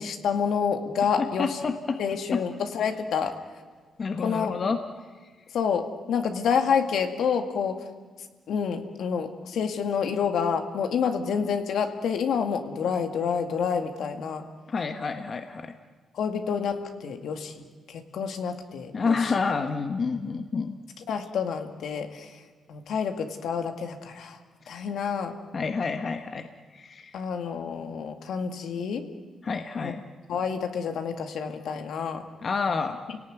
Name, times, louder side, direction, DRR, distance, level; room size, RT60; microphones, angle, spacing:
voice 1, 0.0-1.6 2.0-3.3 4.2-4.6 5.5-7.8 8.2-14.5 16.1-17.6 17.9-19.3 21.1-22.4 22.7-24.4 24.7-25.4 27.1-29.1 29.8-29.9 30.3-32.3 33.1-33.2, left 6 dB, 75° left, 6 dB, 2.2 m, -28 dB
voice 2, 1.2-2.0 2.3-2.4 4.0-4.8 14.7-15.8 18.9-20.8 25.5-26.5 26.7-27.2 29.4-30.0 32.4-33.0, left 4 dB, 40° left, 6 dB, 1.3 m, -28 dB
29.5 x 18.0 x 9.4 m, 1.4 s
cardioid pair, 100°, 0 cm